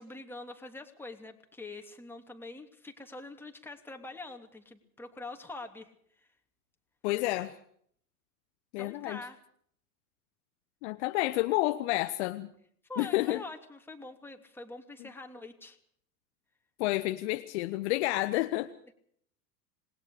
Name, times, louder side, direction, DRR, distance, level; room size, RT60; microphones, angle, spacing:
voice 1, 0.0-5.9 6.2-6.3 8.8-9.4 12.9-15.8 18.9-19.0, left 2 dB, 5° left, 3 dB, 2.9 m, -45 dB
voice 2, 7.0-7.6 8.7-9.2 10.8-12.5 13.0-13.4 16.8-18.7, left 18 dB, 45° left, 10 dB, 1.0 m, -30 dB
27.0 x 20.5 x 5.0 m, 0.64 s
figure-of-eight pair, 95°, 47 cm